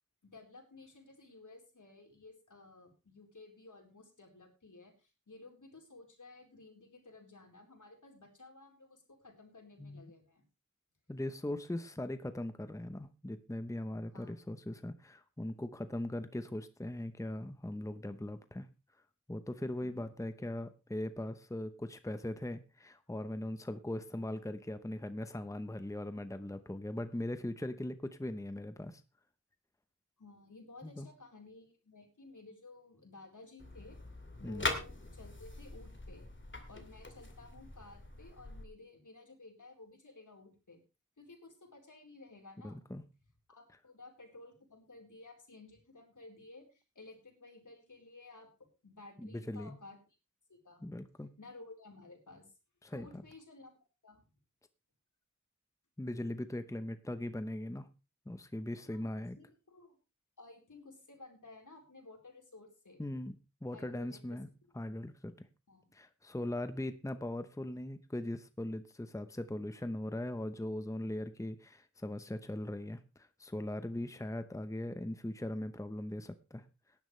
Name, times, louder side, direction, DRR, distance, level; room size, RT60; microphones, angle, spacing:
voice 1, 0.2-10.4 14.1-14.3 19.8-20.1 30.2-34.0 34.4-36.3 36.7-40.8 41.2-42.8 43.5-50.0 50.5-50.9 51.4-52.5 52.9-53.7 54.0-54.2 58.9-60.0 60.4-63.0 63.7-64.7 65.7-65.9, left 2 dB, 70° left, 1 dB, 4.2 m, -55 dB
voice 2, 11.1-18.7 19.3-29.0 30.8-31.1 34.4-34.7 42.6-43.0 49.2-49.8 50.8-51.3 52.8-53.2 56.0-57.9 58.3-59.4 63.0-63.3 63.6-64.5 64.7-65.5 65.9-76.6, left 1 dB, 10° left, 10 dB, 0.9 m, -40 dB
sound 1, 33.6-38.6, left 2 dB, 40° left, 2.5 m, -42 dB
18.0 x 10.5 x 3.3 m, 0.30 s
wide cardioid pair, 70°, 31 cm